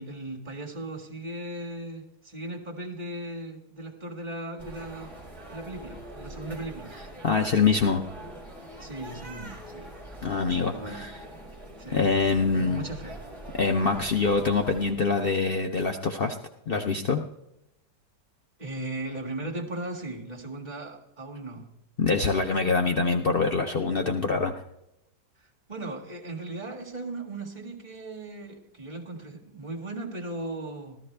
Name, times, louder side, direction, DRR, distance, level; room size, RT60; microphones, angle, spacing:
voice 1, 0.0-5.1 5.5-6.9 8.8-9.9 10.4-11.1 11.8-12.0 12.4-13.2 18.6-21.7 25.7-31.0, right 2 dB, 25° right, -1 dB, 1.9 m, -37 dB
sound 1, 4.6-14.9, right 1 dB, ahead, 3.3 m, -43 dB
voice 2, 7.2-8.0 10.2-11.2 11.9-12.9 13.6-16.4 16.7-17.2 22.0-24.5, left 4 dB, 80° left, 4 dB, 0.5 m, -24 dB
14.5 x 13.5 x 3.3 m, 0.82 s
omnidirectional pair, 1.9 m